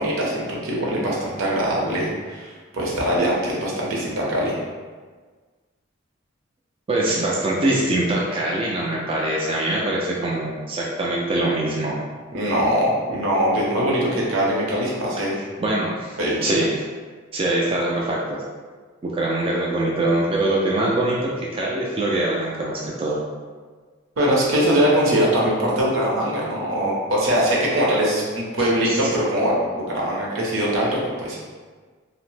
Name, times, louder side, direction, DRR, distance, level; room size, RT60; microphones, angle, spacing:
voice 1, 0.0-4.6 12.3-15.3 16.2-16.4 24.2-31.4, equal, 75° right, -4 dB, 0.8 m, -22 dB
voice 2, 6.9-12.0 15.3-16.2 16.4-16.8 17.3-18.4 19.0-23.2 28.6-29.1, right 1 dB, 30° right, -4 dB, 0.3 m, -23 dB
2.8 x 2.0 x 3.2 m, 1.5 s
head